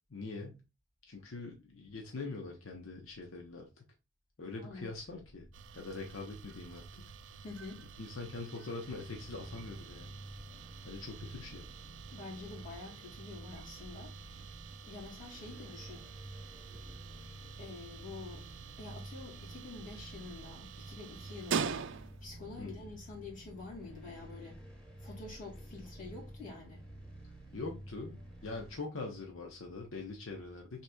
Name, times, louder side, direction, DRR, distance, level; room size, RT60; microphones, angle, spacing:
voice 1, 0.1-0.6 1.1-3.8 4.4-5.5 5.7-7.0 8.0-10.1 10.8-11.6 22.6-22.8 27.5-28.2 28.4-30.8, left 3 dB, 85° left, 0.9 m, -43 dB
voice 2, 4.5-4.9 7.4-7.9 12.1-14.1 14.9-16.1 17.6-18.5 18.8-21.9 22.2-24.6 25.0-26.8, left 3 dB, 40° left, 2.3 m, -47 dB
sound 1, 4.9-10.1, equal, 70° left, 2.0 m, -60 dB
sound 2, 5.5-22.4, right 6 dB, 65° right, 0.4 m, -45 dB
sound 3, 8.8-28.7, right 1 dB, 5° left, 1.3 m, -51 dB
6.3 x 3.0 x 2.3 m
head